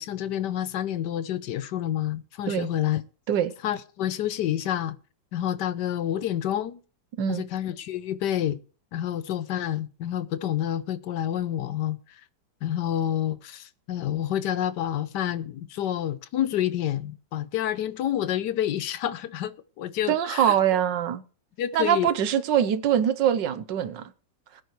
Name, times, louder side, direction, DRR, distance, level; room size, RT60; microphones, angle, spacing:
voice 1, 0.0-3.0 3.6-5.0 5.3-6.8 7.3-8.6 8.9-12.0 12.6-20.6 21.6-22.1, left 11 dB, 75° left, 1.3 m, -28 dB
voice 2, 20.1-21.2 21.7-24.1, right 9 dB, 80° right, 1.5 m, -23 dB
21.0 x 9.3 x 3.1 m
omnidirectional pair, 1.9 m